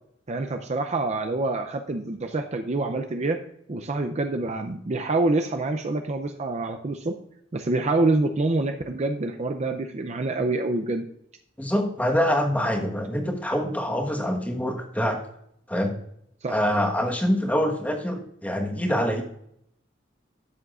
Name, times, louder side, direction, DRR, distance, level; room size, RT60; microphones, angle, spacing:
voice 1, 0.3-3.4 3.7-7.2 7.5-11.0 16.4-16.6, right 2 dB, 35° right, 6 dB, 0.5 m, -26 dB
voice 2, 11.6-15.2 15.7-15.9 16.5-19.2, equal, 10° left, 2 dB, 1.3 m, -25 dB
12.5 x 7.2 x 2.5 m, 0.72 s
head